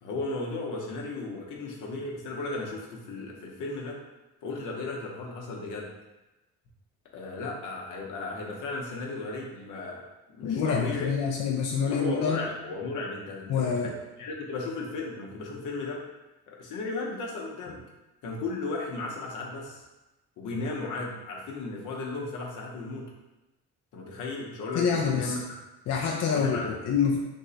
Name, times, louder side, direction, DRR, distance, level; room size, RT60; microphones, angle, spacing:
voice 1, 0.0-4.0 4.4-5.9 7.1-10.0 10.4-11.1 11.9-13.9 14.2-16.0 16.5-17.8 18.2-19.8 20.4-23.1 23.9-25.4 26.3-26.7, left 3 dB, 85° left, -1 dB, 0.8 m, -35 dB
voice 2, 10.4-12.4 13.5-13.9 24.7-25.3 25.9-27.2, left 6 dB, 60° left, -1 dB, 0.5 m, -26 dB
3.6 x 2.0 x 3.9 m, 1.1 s
cardioid pair, 90°, 30 cm